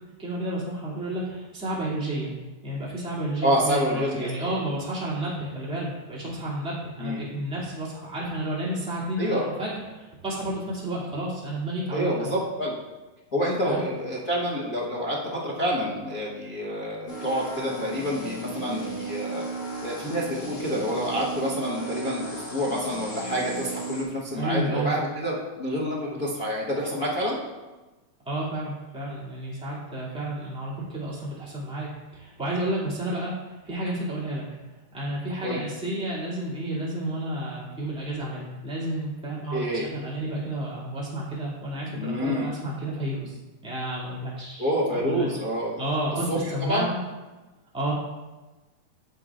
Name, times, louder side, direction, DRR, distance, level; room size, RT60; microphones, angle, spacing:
voice 1, 0.2-2.3 2.6-12.3 13.7-13.8 24.3-24.9 28.2-34.4 34.9-45.3 45.8-47.0 47.7-47.9, right 1 dB, ahead, -7 dB, 1.7 m, -31 dB
voice 2, 3.4-4.5 7.0-7.2 9.2-9.6 11.9-12.8 13.3-19.4 19.8-27.4 35.4-35.6 39.5-39.9 41.9-42.5 44.6-45.8 46.3-46.4 46.7-46.9, equal, 70° left, -8 dB, 0.8 m, -28 dB
sound 1, 17.1-24.0, right 2 dB, 40° left, 1.1 m, -35 dB
14.0 x 5.3 x 2.5 m, 1.2 s
omnidirectional pair, 3.7 m